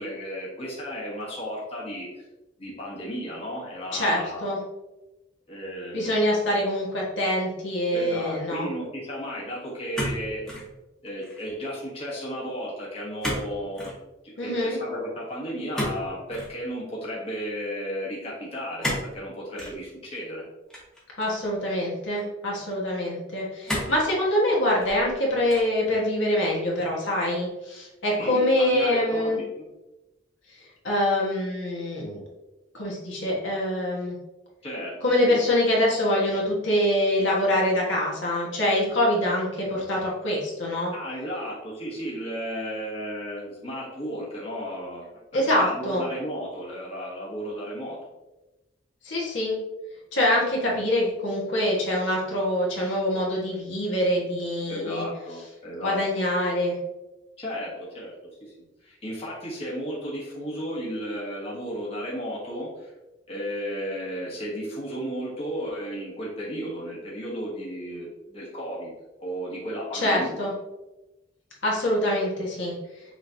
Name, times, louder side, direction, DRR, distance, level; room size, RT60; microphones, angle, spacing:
voice 1, 0.0-2.2 2.6-4.5 5.5-6.2 7.9-10.4 11.0-13.9 14.2-20.4 24.6-24.7 28.2-29.7 34.6-35.4 40.9-45.1 45.3-48.0 54.7-56.0 57.4-58.1 58.4-62.9 63.3-68.9 69.2-70.4, equal, 30° left, -6 dB, 1.2 m, -34 dB
voice 2, 3.9-4.6 5.9-8.7 14.4-14.8 21.2-29.4 30.8-32.2 32.7-34.2 35.0-40.9 45.3-46.0 49.0-49.6 50.1-55.1 55.8-56.8 69.9-70.5 71.6-72.7, left 1 dB, 80° left, -4 dB, 1.4 m, -25 dB
sound 1, 9.9-10.7 11.1-11.5 13.2-13.5 13.7-14.0 15.7-16.5 18.8-19.1 19.6-19.8 20.7-21.5 22.2-22.3 23.7-24.0 24.6-25.1 25.5-25.8, equal, 5° left, 1.3 m, -31 dB
6.1 x 3.2 x 2.7 m, 1.0 s
head